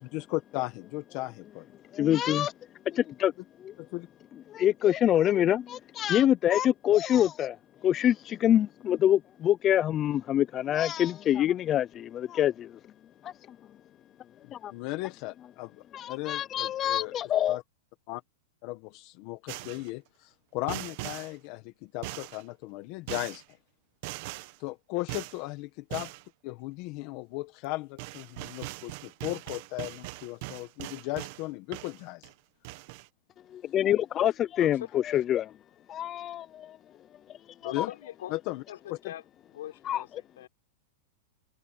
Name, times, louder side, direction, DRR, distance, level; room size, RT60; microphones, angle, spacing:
voice 1, 0.0-1.7 3.8-4.1 7.1-7.3 14.7-17.6 18.1-18.2 18.6-23.4 24.6-26.1 26.4-32.3 37.7-37.9 38.3-38.6 38.9-39.0, left 20 dB, 40° left, 1.5 m, -36 dB
voice 2, 1.9-2.5 2.9-3.3 3.6-3.7 4.5-7.6 7.8-12.8 13.2-13.6 14.5-14.7 15.9-17.6 33.5-35.5 35.9-36.8 37.6-37.9 39.9-40.0, left 11 dB, 20° left, 0.5 m, -26 dB
sound 1, 19.5-19.9 20.7-21.3 22.0-22.4 23.1-23.4 24.0-24.6 25.1-25.4 25.9-26.2 27.6-27.7 28.0-31.4 31.7-32.3 32.6-33.1, right 20 dB, 45° right, 1.3 m, -40 dB
voice 3, 34.6-34.9 37.6-38.4 38.7-39.2 39.5-40.5, left 12 dB, 75° left, 5.5 m, -42 dB
supercardioid pair, 165°, 0 cm